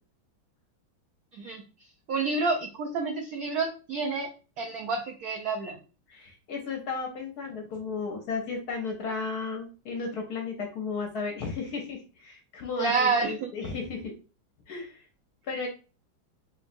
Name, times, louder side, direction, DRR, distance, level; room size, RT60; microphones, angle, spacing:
voice 1, 2.1-4.3 4.6-5.8 12.8-13.5, right 4 dB, 85° right, 2 dB, 0.8 m, -28 dB
voice 2, 6.1-14.1 14.7-15.0 15.5-15.7, left 4 dB, 65° left, 2 dB, 1.0 m, -34 dB
3.3 x 3.0 x 2.4 m, 0.34 s
omnidirectional pair, 2.2 m